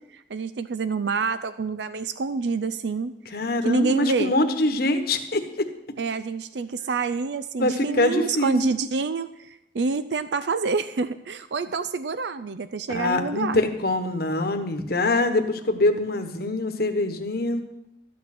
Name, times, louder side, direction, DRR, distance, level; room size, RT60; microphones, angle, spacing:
voice 1, 0.3-3.1 3.6-4.3 6.0-13.6, right 4 dB, 75° right, 13 dB, 0.5 m, -27 dB
voice 2, 3.3-5.4 7.6-8.5 12.9-17.6, left 2 dB, 60° left, 6 dB, 1.2 m, -24 dB
13.5 x 8.7 x 6.0 m, 0.83 s
head